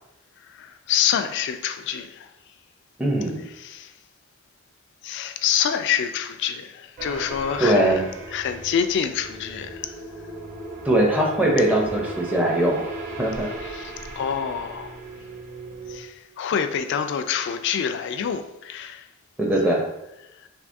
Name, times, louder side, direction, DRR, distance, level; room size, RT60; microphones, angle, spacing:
voice 1, 0.5-2.3 3.6-3.9 5.0-8.0 8.3-10.0 13.6-15.0 15.9-19.1 20.4-20.5, left 8 dB, 55° left, 0.3 m, -27 dB
voice 2, 3.0-3.4 7.6-8.0 10.8-12.8 13.2-13.5 19.4-19.8, right 1 dB, 5° right, 0.4 m, -21 dB
sound 1, 7.0-16.0, right 2 dB, 40° right, 0.7 m, -37 dB
3.5 x 3.1 x 2.5 m
head